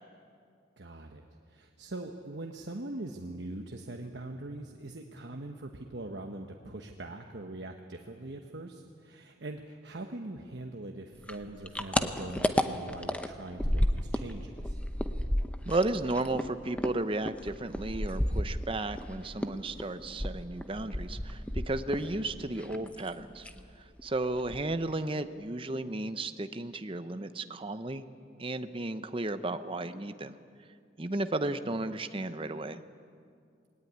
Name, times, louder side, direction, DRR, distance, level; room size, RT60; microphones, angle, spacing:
voice 1, 0.8-14.8 21.9-22.2, right 2 dB, 70° right, 3 dB, 1.1 m, -42 dB
sound 1, 11.2-14.3 14.6-19.1 19.4-22.1 22.4-23.1 23.4-23.7 24.0-24.1 24.4-24.9, equal, 5° left, 0.8 m, -31 dB
voice 2, 15.7-23.5 24.0-28.1 28.4-30.4 31.0-32.8, right 2 dB, 30° right, 10 dB, 0.8 m, -34 dB
20.5 x 18.0 x 9.5 m, 2.3 s
head